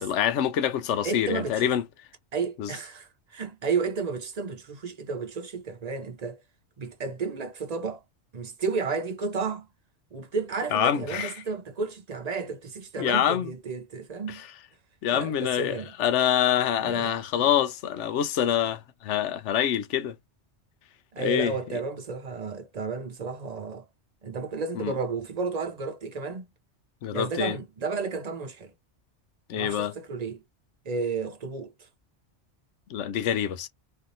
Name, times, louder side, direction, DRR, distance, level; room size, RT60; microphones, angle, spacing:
voice 1, 0.0-1.8 2.6-2.7 10.7-11.4 13.0-13.5 14.3-14.5 15.0-20.2 21.2-21.6 24.8-24.9 27.0-27.6 29.5-29.9 32.9-33.7, left 10 dB, 80° left, 0.9 m, -26 dB
voice 2, 1.0-1.7 2.3-6.4 6.8-8.0 8.3-9.7 10.1-14.4 15.1-15.9 16.8-17.1 21.1-23.9 24.2-26.5 27.1-28.7 29.5-30.4 30.8-31.7, right 4 dB, 40° right, 0.6 m, -32 dB
3.4 x 2.6 x 2.6 m
omnidirectional pair, 1.2 m